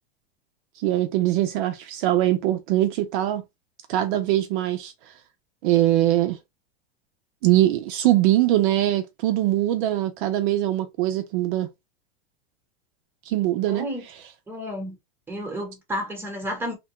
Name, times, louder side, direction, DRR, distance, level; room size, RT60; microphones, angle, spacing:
voice 1, 0.8-3.4 3.9-4.9 5.6-6.4 7.4-11.7 13.3-13.9, right 14 dB, 55° right, 0.5 m, -22 dB
voice 2, 13.7-14.0 14.5-14.9 15.3-16.7, equal, 5° right, 1.0 m, -31 dB
2.9 x 2.2 x 2.9 m
supercardioid pair, 130°, 31 cm